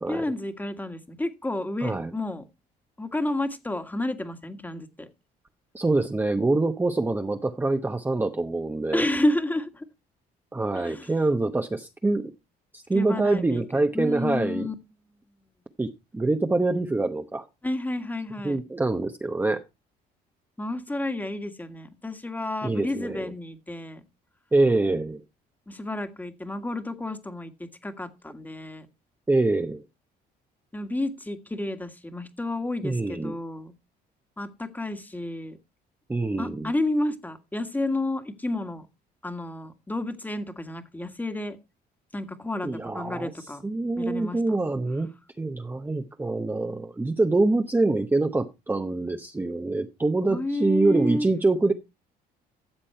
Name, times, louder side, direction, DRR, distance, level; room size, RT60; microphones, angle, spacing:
voice 1, 0.1-2.4 3.0-5.1 8.9-9.8 10.7-11.1 12.9-13.7 13.9-14.7 17.6-18.6 20.6-24.0 25.7-27.5 27.8-28.9 30.7-33.7 34.4-35.6 36.4-38.9 39.2-41.6 42.1-43.6 44.0-44.4 50.3-51.3, left 1 dB, 10° left, 9 dB, 1.6 m, -30 dB
voice 2, 1.8-2.1 5.7-9.0 10.5-12.3 12.7-14.7 15.8-17.4 18.4-19.6 22.6-23.3 24.5-25.2 29.3-29.8 32.8-33.4 36.1-36.7 42.6-43.3 43.6-45.1 45.4-51.7, right 2 dB, 10° right, 5 dB, 0.8 m, -25 dB
13.0 x 7.4 x 4.4 m, 0.26 s
cardioid pair, 110°, 17 cm